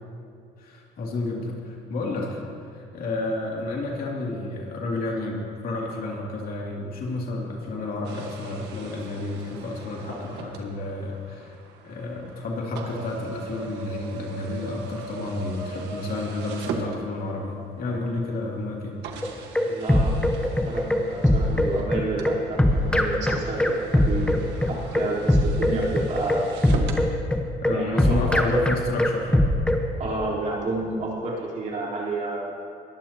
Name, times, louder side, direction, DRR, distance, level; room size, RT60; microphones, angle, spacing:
voice 1, 0.6-2.4 2.7-11.6 11.8-19.0 27.6-29.3, left 2 dB, 60° left, -2 dB, 2.8 m, -31 dB
sound 1, 8.0-17.5 18.2-18.3 19.0-27.1, right 4 dB, 85° right, 1.6 m, -39 dB
voice 2, 10.1-10.4 19.7-26.6 27.7-28.6 30.0-32.5, right 2 dB, 45° right, -5 dB, 3.9 m, -30 dB
sound 2, 19.2-29.8, left 1 dB, 5° left, 1.1 m, -21 dB
21.5 x 14.0 x 3.0 m, 2.4 s
cardioid pair, 110°, 17 cm